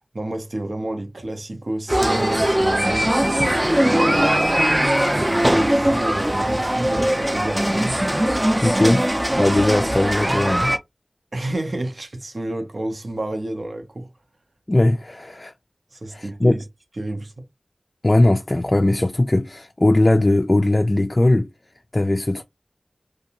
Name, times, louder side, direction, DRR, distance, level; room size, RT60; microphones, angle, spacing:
voice 1, 0.1-3.1 3.8-4.6 5.1-8.0 11.3-14.1 15.9-16.6 17.0-17.4, right 1 dB, 70° right, 0.7 m, -29 dB
sound 1, 1.9-10.8, right 1 dB, 20° right, 0.4 m, -20 dB
voice 2, 8.6-9.0 9.4-10.8 14.7-15.5 16.1-16.6 18.0-21.5 21.9-22.4, left 1 dB, 40° left, 0.3 m, -19 dB
2.6 x 2.3 x 2.8 m
wide cardioid pair, 45°, 0 cm